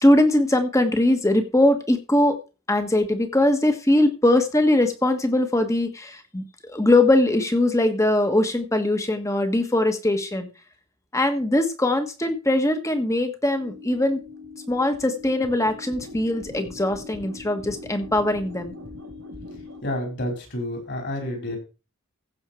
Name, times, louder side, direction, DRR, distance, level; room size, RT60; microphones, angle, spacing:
voice 1, 0.0-2.4 2.7-10.5 11.1-14.2 14.7-18.7, left 1 dB, 15° left, 7 dB, 1.4 m, -21 dB
sound 1, 13.6-19.8, left 3 dB, 85° right, 3.0 m, -41 dB
voice 2, 19.8-21.6, left 1 dB, 55° left, 2 dB, 4.9 m, -29 dB
15.5 x 6.4 x 4.5 m, 0.31 s
head